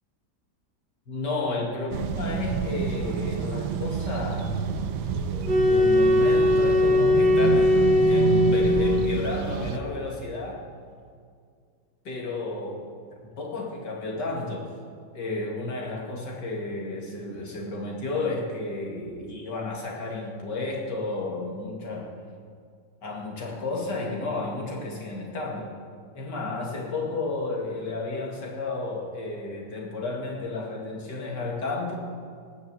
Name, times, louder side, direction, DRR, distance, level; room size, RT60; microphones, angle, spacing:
voice 1, 1.1-4.5 5.0-10.6 12.0-12.9 13.4-14.7 15.1-22.1 23.0-25.7 26.1-32.0, left 3 dB, 80° left, -2 dB, 3.0 m, -32 dB
sound 1, 1.9-9.8, right 7 dB, 75° right, 1.4 m, -28 dB
sound 2, 5.4-9.4, left 1 dB, 30° right, 1.8 m, -20 dB
18.5 x 7.0 x 8.0 m, 2.2 s
omnidirectional pair, 1.8 m